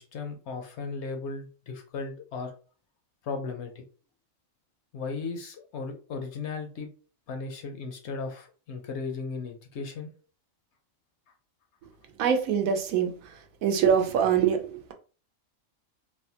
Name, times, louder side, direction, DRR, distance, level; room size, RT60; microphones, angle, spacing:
voice 1, 0.0-2.5 3.2-3.8 4.9-6.9 7.3-10.1, left 4 dB, 65° left, 0.8 m, -36 dB
voice 2, 12.2-13.2 13.6-14.9, right 7 dB, 85° right, 1.0 m, -24 dB
3.4 x 2.1 x 2.7 m
omnidirectional pair, 1.4 m